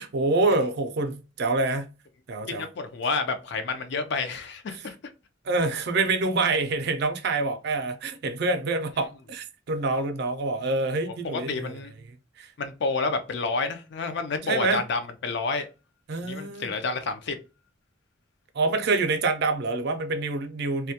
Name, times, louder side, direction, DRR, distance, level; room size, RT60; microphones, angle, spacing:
voice 1, 0.0-1.9 2.3-2.7 4.8-4.9 5.4-11.8 12.4-12.5 14.4-14.8 16.1-16.7 18.5-20.9, right 3 dB, 55° right, 0.4 m, -26 dB
voice 2, 2.5-5.0 11.3-11.9 12.6-15.7 16.2-17.4, left 4 dB, 60° left, 0.4 m, -29 dB
2.2 x 2.1 x 2.7 m
head